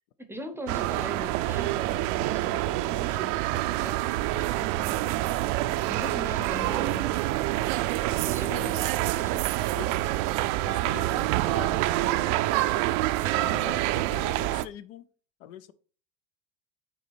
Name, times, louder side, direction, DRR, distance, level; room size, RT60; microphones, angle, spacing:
voice 1, 0.0-5.4 5.9-7.4 8.1-8.8 9.0-9.6 13.2-13.9, right 1 dB, 5° right, 0.6 m, -41 dB
sound 1, 0.7-14.6, right 16 dB, 70° right, 0.5 m, -27 dB
voice 2, 8.4-8.9 9.8-10.1 10.6-12.4 13.4-15.1 15.4-15.7, left 11 dB, 80° left, 0.8 m, -43 dB
5.6 x 4.3 x 4.6 m
supercardioid pair, 135°, 39 cm